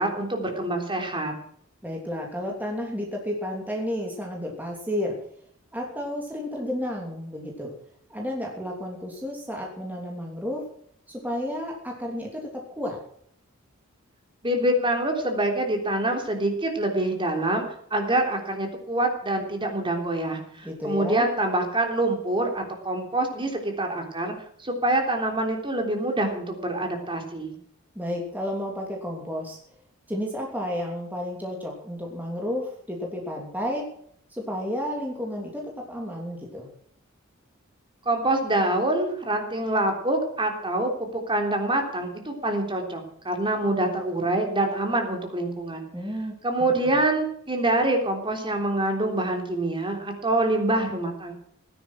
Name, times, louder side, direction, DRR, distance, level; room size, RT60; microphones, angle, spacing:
voice 1, 0.0-1.3 14.4-17.6 17.9-24.3 24.6-27.6 38.1-40.9 41.3-45.9 46.4-51.3, right 1 dB, 25° right, 3 dB, 3.4 m, -25 dB
voice 2, 1.8-5.2 5.7-7.7 8.1-10.6 11.1-13.0 20.6-21.3 27.9-29.6 30.1-33.9 34.3-36.7 45.9-46.3 46.7-46.9, equal, 10° right, -1 dB, 3.0 m, -32 dB
18.0 x 11.0 x 6.2 m, 0.65 s
head